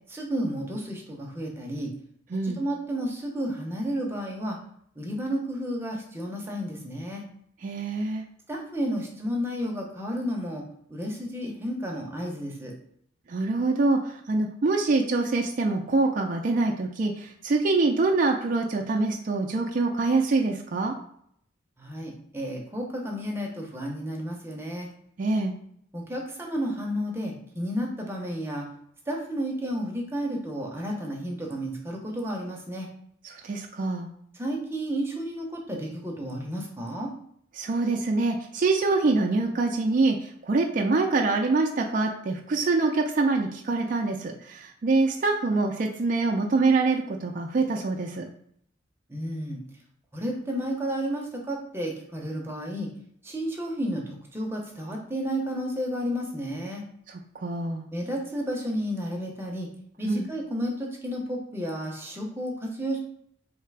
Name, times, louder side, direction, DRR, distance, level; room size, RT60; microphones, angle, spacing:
voice 1, 0.1-1.9 2.4-4.6 5.0-7.2 8.5-12.7 21.8-24.9 25.9-28.7 29.1-32.9 34.3-37.1 49.1-49.6 50.1-52.9 53.2-56.8 57.9-59.7 60.0-63.0, equal, 15° right, 0 dB, 0.7 m, -32 dB
voice 2, 7.6-8.2 13.3-21.0 25.2-25.5 33.2-34.1 37.6-48.3 57.4-57.9 60.0-60.2, right 3 dB, 45° right, 1 dB, 0.4 m, -25 dB
3.2 x 2.8 x 4.6 m, 0.67 s
head